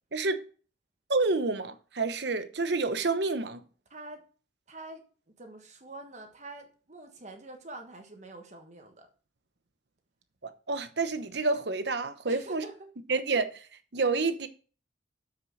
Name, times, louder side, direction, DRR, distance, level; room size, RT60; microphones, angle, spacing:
voice 1, 0.1-0.4 1.1-3.6 10.4-12.6 13.1-13.7 13.9-14.5, right 3 dB, 60° right, 0.9 m, -29 dB
voice 2, 3.9-4.2 4.7-9.1 12.3-12.9, right 2 dB, 35° right, 1.4 m, -46 dB
7.4 x 6.5 x 6.4 m
head